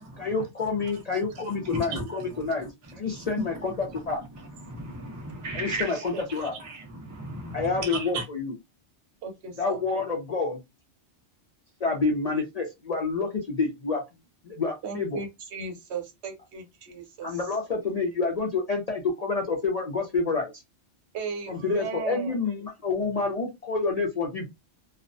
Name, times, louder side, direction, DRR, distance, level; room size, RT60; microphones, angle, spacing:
voice 1, 0.2-2.7 2.9-4.2 5.5-6.6 7.5-8.5 9.6-10.6 11.8-14.0 14.5-15.2 17.2-20.5 21.5-24.5, left 4 dB, 50° left, 0.5 m, -28 dB
voice 2, 1.6-2.0 2.3-2.4 3.2-3.3 4.6-6.0 6.6-8.2, right 2 dB, 30° right, 0.3 m, -35 dB
voice 3, 5.9-6.2 9.2-9.8 14.8-17.4 21.1-22.3, right 5 dB, 70° right, 0.9 m, -36 dB
2.4 x 2.1 x 2.5 m
omnidirectional pair, 1.2 m